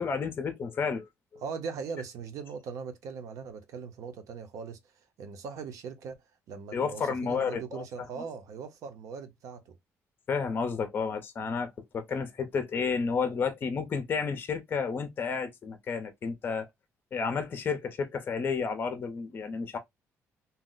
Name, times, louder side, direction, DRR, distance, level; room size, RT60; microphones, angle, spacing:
voice 1, 0.0-1.4 6.7-7.8 10.3-16.7 17.1-19.8, left 5 dB, 40° left, 0.6 m, -31 dB
voice 2, 1.4-4.8 5.2-6.2 6.5-9.7, right 6 dB, 80° right, 0.7 m, -40 dB
2.7 x 2.0 x 3.8 m
cardioid pair, 145°, 6 cm